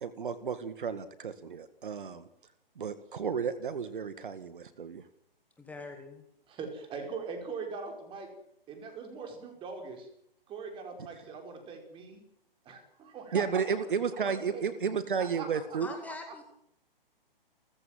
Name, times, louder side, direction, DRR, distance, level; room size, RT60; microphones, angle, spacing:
voice 1, 0.0-2.2 2.8-5.0 13.3-15.9, right 6 dB, 60° right, 12 dB, 2.0 m, -32 dB
voice 2, 5.6-6.2 15.8-16.4, left 3 dB, 5° left, 3 dB, 2.3 m, -43 dB
voice 3, 6.5-8.3 8.7-10.1 10.5-12.2 12.7-13.9 14.1-15.8, right 5 dB, 15° right, 4 dB, 5.3 m, -41 dB
30.0 x 15.0 x 7.6 m, 0.73 s
figure-of-eight pair, 135°, 29 cm